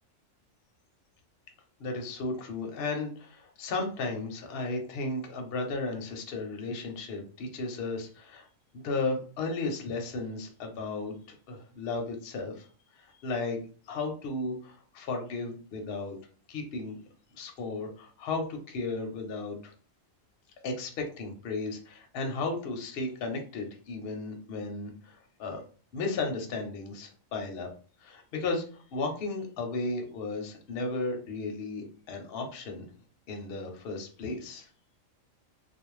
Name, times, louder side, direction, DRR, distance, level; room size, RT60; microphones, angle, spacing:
voice 1, 1.8-8.5 8.7-12.7 13.0-13.6 13.9-16.2 16.5-17.0 17.3-19.7 20.6-25.6 25.9-27.7 28.0-32.8 33.3-34.7, left 3 dB, 60° left, 3 dB, 0.7 m, -34 dB
2.4 x 2.0 x 3.0 m, 0.40 s
omnidirectional pair, 1.4 m